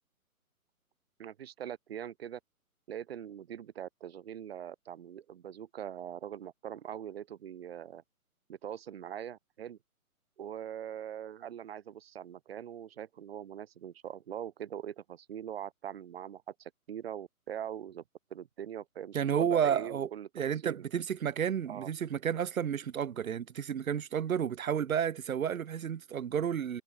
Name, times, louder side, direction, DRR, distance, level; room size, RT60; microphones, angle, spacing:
voice 1, 1.2-2.4 2.9-8.0 8.5-9.8 10.4-18.0 18.3-20.3 20.6-20.8 21.7-21.9, right 9 dB, 40° right, 1.4 m, -42 dB
voice 2, 19.1-20.1 20.3-26.8, right 8 dB, 65° right, 1.0 m, -31 dB
hypercardioid pair, 155°, 44 cm